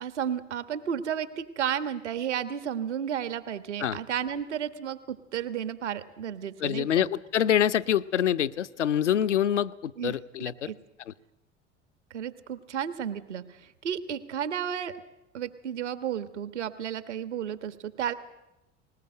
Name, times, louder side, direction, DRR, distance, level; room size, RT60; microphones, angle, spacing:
voice 1, 0.0-7.1 10.0-10.1 10.7-10.8 12.1-14.9 15.3-18.1, right 9 dB, 75° right, 13 dB, 1.5 m, -32 dB
voice 2, 6.6-10.7 11.1-11.2, left 10 dB, 80° left, 15 dB, 0.7 m, -26 dB
20.0 x 20.0 x 7.7 m, 0.92 s
figure-of-eight pair, 65°, 35 cm